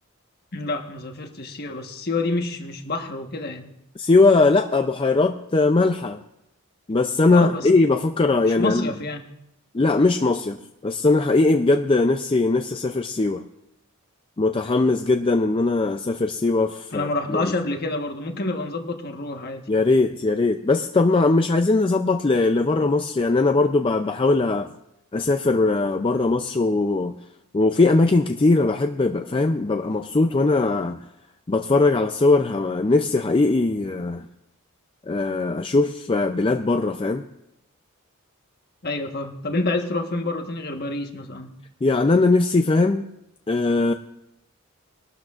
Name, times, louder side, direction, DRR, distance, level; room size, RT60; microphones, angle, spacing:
voice 1, 0.5-3.7 7.3-7.7 8.4-9.2 16.9-19.7 38.8-41.5, left 2 dB, 45° left, 4 dB, 1.3 m, -28 dB
voice 2, 4.0-6.2 6.9-8.9 9.7-10.6 10.8-13.4 14.4-17.5 19.7-24.7 25.1-27.1 27.5-31.1 31.5-34.3 35.1-37.2 41.8-43.1 43.5-43.9, left 3 dB, 25° left, 5 dB, 0.4 m, -20 dB
21.5 x 12.5 x 2.5 m, 0.82 s
head